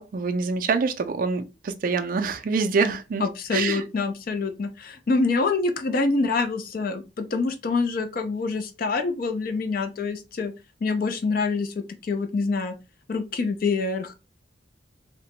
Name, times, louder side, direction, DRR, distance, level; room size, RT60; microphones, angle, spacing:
voice 1, 0.0-3.2 3.5-3.8, right 4 dB, 45° right, 0.3 m, -25 dB
voice 2, 3.2-10.5 10.8-12.7 13.1-14.2, left 4 dB, 50° left, 0.4 m, -26 dB
2.8 x 2.1 x 2.8 m
head